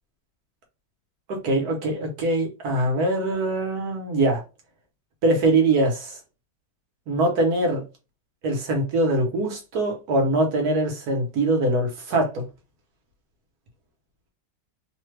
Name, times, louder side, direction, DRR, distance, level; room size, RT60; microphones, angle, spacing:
voice 1, 1.3-4.4 5.2-6.2 7.1-7.8 8.4-12.5, right 2 dB, 70° right, 1.4 m, -23 dB
3.2 x 2.2 x 3.2 m
omnidirectional pair, 1.8 m